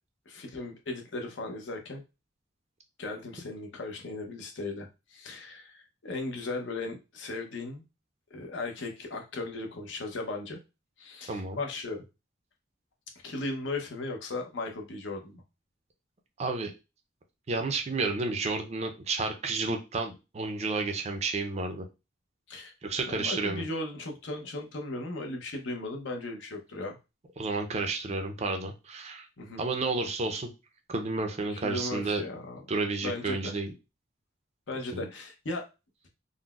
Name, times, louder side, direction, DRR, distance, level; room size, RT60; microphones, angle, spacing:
voice 1, 0.3-2.0 3.0-7.8 8.3-10.6 11.0-12.1 13.2-15.4 22.5-22.7 23.2-27.0 29.4-29.7 31.5-32.6 33.0-33.6 34.7-35.6 36.0-36.1, left 2 dB, 70° left, 3 dB, 0.7 m, -37 dB
voice 2, 11.3-11.6 16.4-16.7 17.5-21.9 22.8-23.6 27.4-29.3 29.6-30.5 30.9-32.2 32.7-33.7 34.9-35.1, right 3 dB, 35° right, 5 dB, 0.5 m, -31 dB
3.8 x 2.1 x 2.3 m, 0.27 s
head